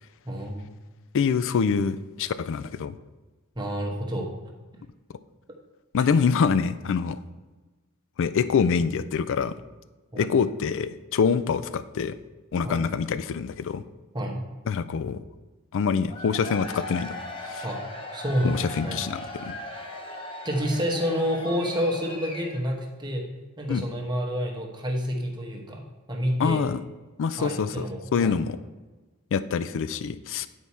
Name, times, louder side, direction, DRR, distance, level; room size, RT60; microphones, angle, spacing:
voice 1, 0.2-0.8 3.5-4.3 10.1-10.3 12.6-12.9 14.1-14.4 17.6-17.8 18.1-19.0 20.4-23.2 23.6-25.8 26.1-26.6 27.4-28.4, equal, 20° right, 1 dB, 1.1 m, -29 dB
voice 2, 1.1-3.0 5.9-7.2 8.2-9.6 10.2-12.2 12.5-13.8 14.7-15.2 15.7-17.6 18.4-19.6 23.7-23.8 26.4-26.8 27.2-27.9 28.1-28.6 29.3-30.5, left 6 dB, 60° left, 14 dB, 0.4 m, -25 dB
Cheering / Crowd, 16.0-22.8, left 1 dB, 25° left, 0.9 m, -38 dB
9.1 x 4.7 x 4.2 m, 1.2 s
head